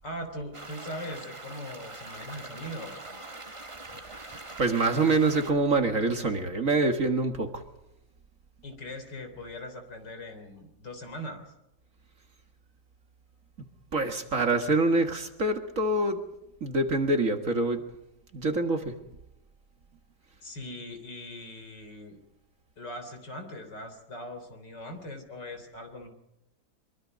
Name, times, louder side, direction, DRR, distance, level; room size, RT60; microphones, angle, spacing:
voice 1, 0.0-3.0 8.6-11.5 20.4-22.2 22.8-26.1, left 1 dB, 65° left, 7 dB, 4.2 m, -40 dB
sound 1, 0.5-5.5, right 2 dB, 20° right, 1.3 m, -43 dB
voice 2, 4.3-7.6 13.9-16.2 16.6-17.8 18.3-18.9, right 2 dB, 45° right, 6 dB, 2.1 m, -25 dB
23.5 x 23.5 x 5.3 m, 0.89 s
omnidirectional pair, 2.0 m